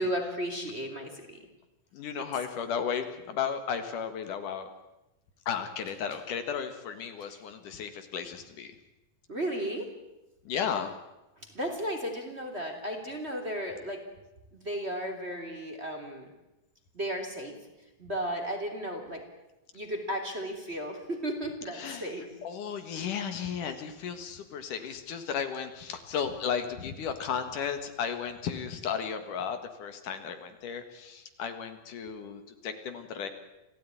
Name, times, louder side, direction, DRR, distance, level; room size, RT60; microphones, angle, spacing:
voice 1, 0.0-1.4 2.2-2.3 7.2-7.4 9.3-9.9 11.5-14.0 14.5-16.3 16.9-17.6 18.0-19.2 19.7-22.3, equal, 20° right, 3 dB, 2.9 m, -34 dB
voice 2, 1.9-4.7 5.5-8.7 10.5-10.9 21.7-22.1 22.4-33.3, left 7 dB, 70° left, 8 dB, 3.1 m, -34 dB
27.5 x 16.5 x 9.7 m, 0.98 s
omnidirectional pair, 4.0 m